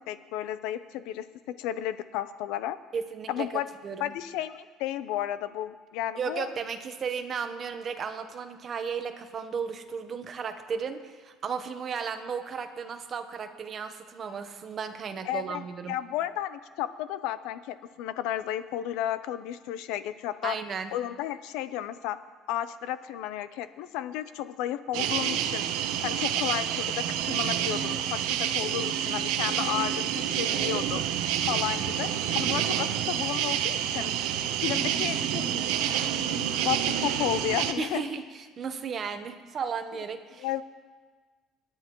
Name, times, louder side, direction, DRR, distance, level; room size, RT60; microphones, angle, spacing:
voice 1, 0.1-1.2 1.6-2.8 3.3-3.7 4.0-6.5 15.3-20.6 20.9-22.2 22.5-25.7 26.0-28.2 28.5-31.0 31.5-34.1 34.6-35.4 36.3-38.0 40.4-40.6, left 12 dB, 80° left, 13 dB, 0.6 m, -33 dB
voice 2, 2.9-3.5 3.8-4.1 6.2-16.0 20.4-20.9 37.8-40.5, right 6 dB, 35° right, 7 dB, 0.9 m, -34 dB
sound 1, 24.9-37.7, right 10 dB, 85° right, 0.8 m, -28 dB
26.5 x 9.8 x 3.1 m, 1.5 s
cardioid pair, 150°, 0 cm